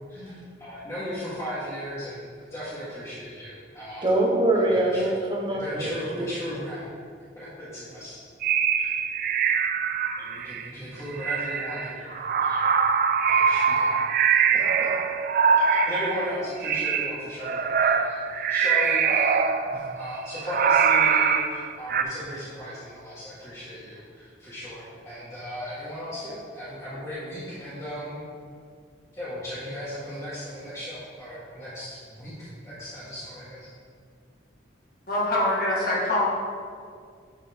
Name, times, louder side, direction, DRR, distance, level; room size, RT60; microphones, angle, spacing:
voice 1, 0.1-4.1 4.7-5.1 5.5-6.9 7.3-8.2 10.2-12.8 13.3-13.9 14.5-14.9 15.7-28.2 29.1-33.7, equal, 15° left, -12 dB, 1.4 m, -36 dB
voice 2, 4.0-6.3, right 1 dB, 25° right, -2 dB, 1.0 m, -24 dB
sound 1, 8.4-10.7 11.1-16.4 16.6-22.0, right 6 dB, 45° right, 0.3 m, -23 dB
voice 3, 35.1-36.2, left 1 dB, 50° left, -5 dB, 1.6 m, -24 dB
10.5 x 3.7 x 3.5 m, 2.1 s
head